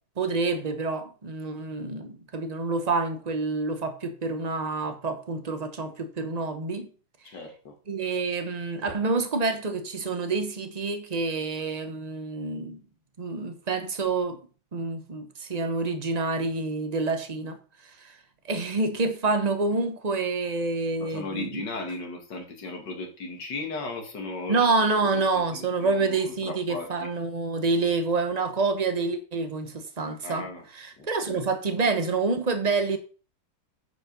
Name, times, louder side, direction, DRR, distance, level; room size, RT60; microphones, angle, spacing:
voice 1, 0.2-6.9 7.9-12.8 13.2-14.4 14.7-17.6 17.8-18.1 18.4-21.6 24.5-30.5 30.7-33.0, right 3 dB, 30° right, 0.8 m, -27 dB
voice 2, 7.2-7.7 21.0-24.7 25.0-26.9 30.2-30.7 31.0-31.4, left 3 dB, 60° left, 2.6 m, -36 dB
9.6 x 5.3 x 5.3 m
omnidirectional pair, 2.1 m